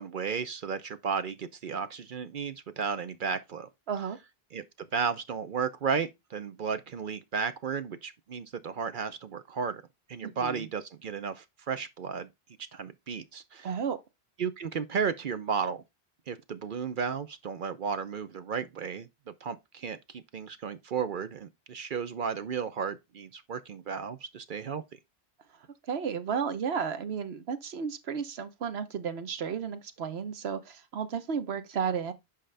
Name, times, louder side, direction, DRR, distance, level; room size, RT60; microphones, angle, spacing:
voice 1, 0.0-3.7 4.5-4.6 4.9-9.8 10.1-12.3 12.7-13.7 14.4-15.8 16.3-19.1 19.4-24.8, right 6 dB, 60° right, 0.7 m, -33 dB
voice 2, 3.9-4.2 10.2-10.7 13.6-14.0 25.9-32.1, right 6 dB, 80° right, 1.1 m, -33 dB
7.7 x 5.1 x 3.3 m
omnidirectional pair, 1.1 m